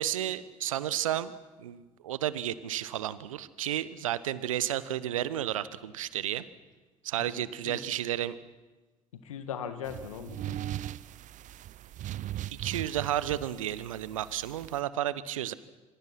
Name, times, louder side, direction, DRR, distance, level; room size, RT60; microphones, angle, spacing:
voice 1, 0.0-1.3 1.6-6.4 7.0-8.4 12.5-15.5, right 12 dB, 75° right, 17 dB, 1.0 m, -32 dB
voice 2, 7.2-7.8 9.1-10.6, left 8 dB, 75° left, 10 dB, 1.9 m, -40 dB
sound 1, 9.8-14.8, right 12 dB, 45° right, 0.8 m, -39 dB
27.0 x 25.5 x 6.0 m, 1.2 s
figure-of-eight pair, 55°, 17 cm